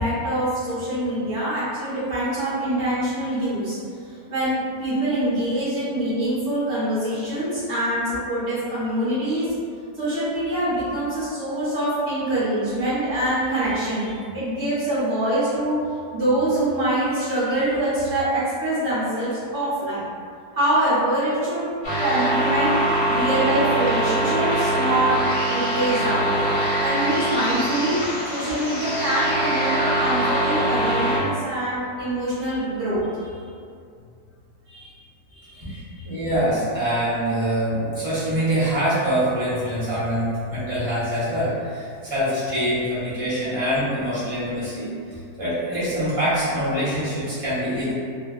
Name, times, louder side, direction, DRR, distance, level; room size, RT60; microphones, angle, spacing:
voice 1, 0.0-3.8 4.0-9.5 9.9-15.8 16.1-20.0 20.5-21.6 22.0-22.8 23.0-25.2 25.4-26.3 26.8-28.0 28.3-33.5 34.7-34.9 35.3-36.1, right 1 dB, 50° right, -15 dB, 1.0 m, -24 dB
sound 1, 21.8-31.2, right 1 dB, 60° left, 1.1 m, -23 dB
voice 2, 35.7-44.9 45.4-47.9, equal, 25° right, -12 dB, 0.9 m, -24 dB
3.1 x 2.2 x 2.3 m, 2.3 s
omnidirectional pair, 1.7 m